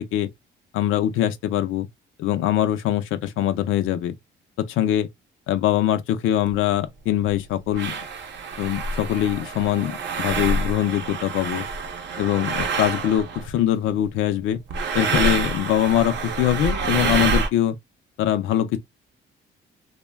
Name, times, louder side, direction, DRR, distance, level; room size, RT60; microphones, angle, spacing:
voice 1, 0.7-1.9 2.2-4.1 4.6-5.1 5.5-8.0 8.6-11.6 12.2-14.6 14.9-17.8 18.2-18.8, left 11 dB, 85° left, 0.5 m, -23 dB
sound 1, 6.5-6.6 7.3-7.4 7.7-13.6 14.7-17.5, right 4 dB, 65° right, 0.6 m, -27 dB
2.2 x 2.1 x 3.2 m
cardioid pair, 90°, 20 cm